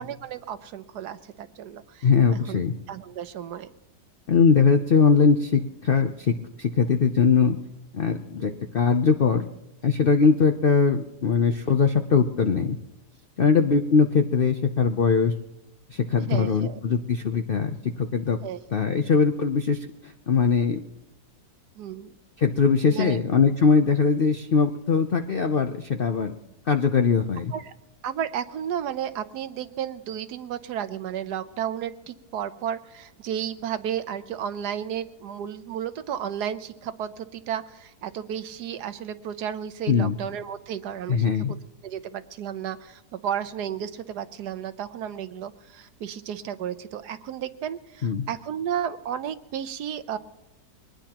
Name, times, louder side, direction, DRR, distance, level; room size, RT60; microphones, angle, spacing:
voice 1, 0.0-2.6 2.9-3.7 8.4-8.6 11.4-11.5 16.2-16.8 18.4-18.6 21.8-22.1 22.9-23.2 27.5-27.7 28.0-41.6 41.8-50.2, right 9 dB, 75° right, 12 dB, 1.3 m, -33 dB
voice 2, 2.0-2.7 4.3-7.6 7.9-9.4 9.8-12.8 13.4-15.3 15.9-17.7 18.0-18.4 18.7-20.8 22.4-26.3 26.7-27.5 39.9-40.2 41.1-41.5 48.0-48.3, left 5 dB, 65° left, 6 dB, 0.5 m, -21 dB
22.5 x 19.5 x 3.0 m, 0.89 s
omnidirectional pair, 1.8 m